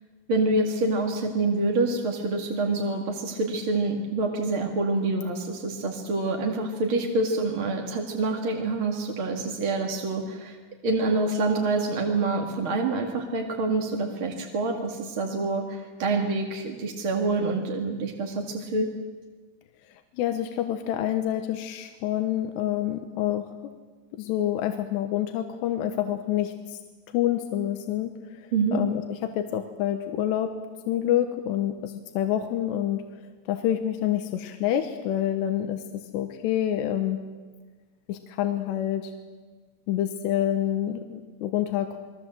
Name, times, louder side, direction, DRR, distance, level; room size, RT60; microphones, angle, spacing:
voice 1, 0.3-10.6 10.8-18.9 28.5-28.8, right 3 dB, 40° right, 1 dB, 2.2 m, -26 dB
voice 2, 20.1-23.5 24.1-26.8 27.1-30.5 30.9-33.0 33.5-35.8 36.1-37.2 38.1-39.1 39.9-42.0, left 11 dB, 85° left, 6 dB, 3.4 m, -27 dB
29.5 x 21.5 x 7.8 m, 1.4 s
omnidirectional pair, 4.9 m